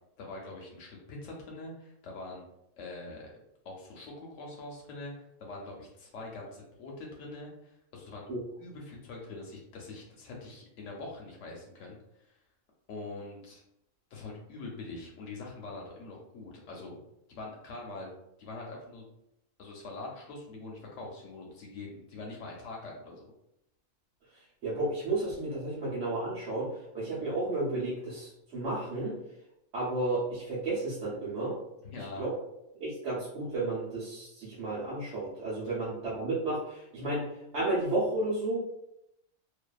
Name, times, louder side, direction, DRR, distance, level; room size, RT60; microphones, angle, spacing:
voice 1, 0.2-2.4 2.8-3.3 3.6-8.2 8.6-12.3 12.9-13.6 14.1-17.0 17.3-18.1 18.4-19.1 19.6-23.3 31.8-32.3, left 2 dB, 70° left, -1 dB, 0.8 m, -43 dB
voice 2, 24.6-26.7 26.9-29.1 29.7-31.6 32.2-32.3 32.8-37.3 37.5-38.6, right 2 dB, 65° right, -9 dB, 1.0 m, -32 dB
2.6 x 2.2 x 2.2 m, 0.82 s
omnidirectional pair, 1.4 m